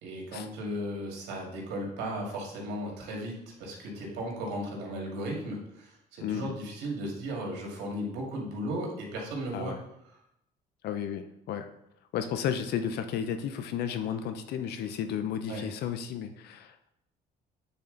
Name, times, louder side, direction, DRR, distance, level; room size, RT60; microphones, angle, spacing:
voice 1, 0.0-9.7 15.5-15.6, right 1 dB, 85° right, -1 dB, 2.1 m, -36 dB
voice 2, 6.2-6.6 9.5-9.8 10.8-11.7 12.1-16.9, left 8 dB, 75° left, 9 dB, 0.7 m, -33 dB
8.9 x 4.3 x 3.9 m, 0.80 s
cardioid pair, 110°, 17 cm